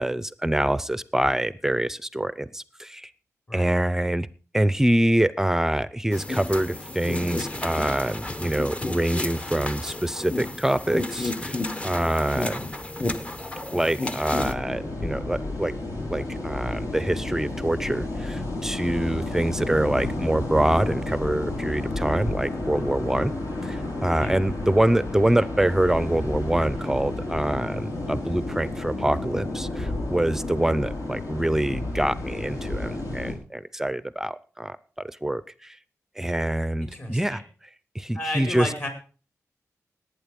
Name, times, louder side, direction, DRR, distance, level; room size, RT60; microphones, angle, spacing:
voice 1, 0.0-3.1 3.5-4.3 4.5-11.6 11.8-12.6 13.7-15.8 16.1-23.3 23.6-34.8 35.2-35.8 36.2-37.4 37.9-38.7, right 1 dB, 10° right, 17 dB, 0.6 m, -25 dB
sound 1, 6.1-14.5, left 2 dB, 20° left, 1.1 m, -32 dB
sound 2, 14.3-33.3, left 2 dB, 75° left, 5.5 m, -31 dB
voice 2, 36.8-37.4 38.1-38.9, left 1 dB, 35° left, 4 dB, 5.6 m, -32 dB
18.5 x 9.0 x 5.3 m, 0.39 s
wide cardioid pair, 110°, 6 cm